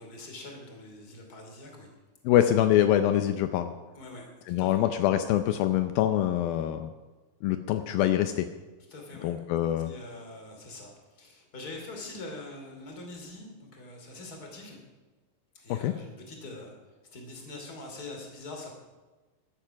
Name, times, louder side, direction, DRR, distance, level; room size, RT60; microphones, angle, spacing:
voice 1, 0.0-1.9 3.9-4.3 4.6-4.8 8.9-9.3 9.8-14.8 15.5-16.8 17.0-18.8, left 2 dB, 25° left, 2 dB, 2.7 m, -44 dB
voice 2, 2.3-3.7 4.5-6.9 7.4-8.5 9.2-9.9 15.7-15.9, left 12 dB, 90° left, 9 dB, 2.1 m, -24 dB
14.5 x 12.0 x 5.9 m, 1.2 s
omnidirectional pair, 5.1 m